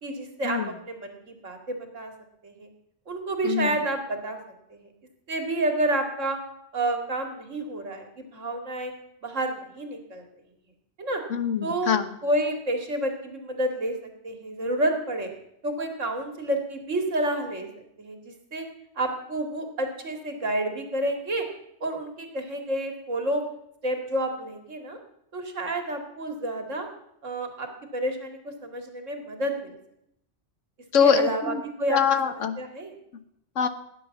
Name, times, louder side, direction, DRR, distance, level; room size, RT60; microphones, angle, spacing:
voice 1, 0.0-2.1 2.4-2.7 3.1-4.4 4.7-4.9 5.3-6.4 6.7-8.9 9.2-10.2 11.0-11.2 11.6-11.9 12.2-14.0 14.2-15.3 15.6-17.7 18.0-18.7 19.0-21.4 21.8-23.4 23.8-25.0 25.3-26.9 27.2-29.8 31.0-32.0 32.6-32.9, right 1 dB, 85° right, 4 dB, 2.7 m, -29 dB
voice 2, 11.3-12.0 30.9-31.6 31.9-32.6 33.6-33.7, left 7 dB, 80° left, 10 dB, 1.5 m, -23 dB
17.0 x 10.0 x 7.1 m, 0.78 s
omnidirectional pair, 1.3 m